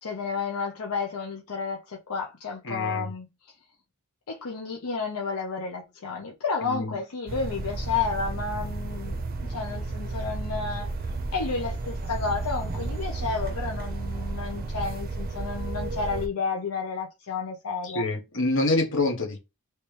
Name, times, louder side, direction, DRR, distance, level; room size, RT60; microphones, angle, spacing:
voice 1, 0.0-3.3 4.3-10.9 11.3-18.0, left 4 dB, 80° left, 0.7 m, -31 dB
voice 2, 2.6-3.1 6.7-6.9 17.8-19.4, left 2 dB, 60° left, 1.3 m, -26 dB
sound 1, 7.3-16.3, right 3 dB, 40° right, 0.6 m, -32 dB
3.2 x 3.0 x 3.2 m
head